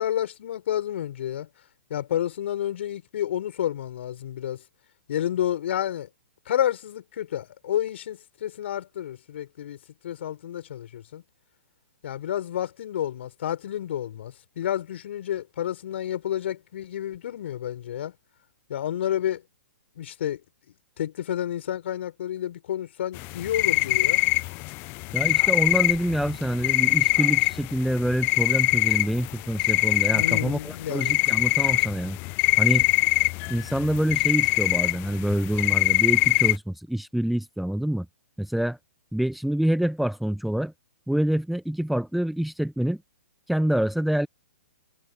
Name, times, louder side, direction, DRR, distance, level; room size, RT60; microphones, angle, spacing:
voice 1, 0.0-1.5 1.9-4.6 5.1-6.1 6.5-9.8 10.0-11.2 12.0-18.1 18.7-19.4 20.0-20.4 21.0-24.2 30.0-31.2, left 11 dB, 55° left, 5.7 m, -30 dB
sound 1, 23.1-36.6, left 26 dB, 30° left, 0.3 m, -23 dB
voice 2, 25.1-32.2 32.6-32.9 33.5-38.1 38.4-38.8 39.1-40.7 41.1-43.0 43.5-44.3, right 1 dB, ahead, 0.7 m, -26 dB
hypercardioid pair, 125°, 7 cm